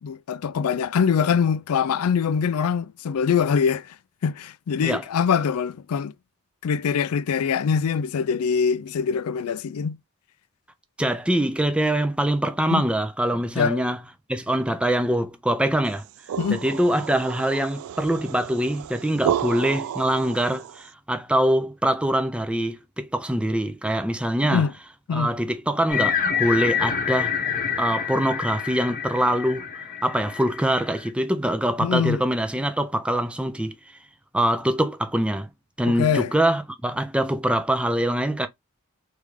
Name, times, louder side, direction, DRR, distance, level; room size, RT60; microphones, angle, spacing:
voice 1, 0.0-3.9 4.2-6.1 6.6-10.0 12.7-12.8 13.6-13.8 16.4-16.6 24.5-24.7 25.1-25.3 31.8-32.2 35.9-36.3, left 6 dB, 85° left, 0.4 m, -23 dB
voice 2, 11.0-14.0 14.3-16.0 16.5-24.6 25.1-27.4 27.8-29.7 30.0-33.7 34.3-35.5 35.8-38.5, right 1 dB, 5° right, 0.4 m, -24 dB
sound 1, 15.9-20.9, right 9 dB, 75° right, 0.3 m, -32 dB
sound 2, 25.9-31.1, left 7 dB, 40° left, 0.9 m, -27 dB
3.6 x 3.2 x 3.1 m
head